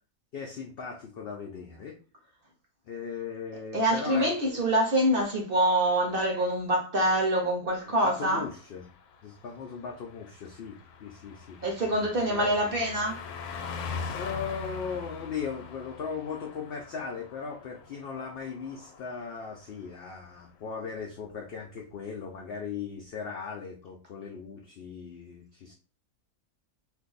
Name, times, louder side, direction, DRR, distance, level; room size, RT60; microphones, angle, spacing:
voice 1, 0.3-2.0 2.8-4.6 8.0-8.8 9.2-12.6 14.1-25.7, left 6 dB, 75° left, 1 dB, 0.5 m, -38 dB
voice 2, 3.7-8.4 11.6-13.2, right 1 dB, 50° right, 1 dB, 0.7 m, -25 dB
Car passing by, 7.8-19.7 20.0-20.2, left 5 dB, 90° left, 1.1 m, -42 dB
2.6 x 2.5 x 3.9 m, 0.38 s
omnidirectional pair, 1.5 m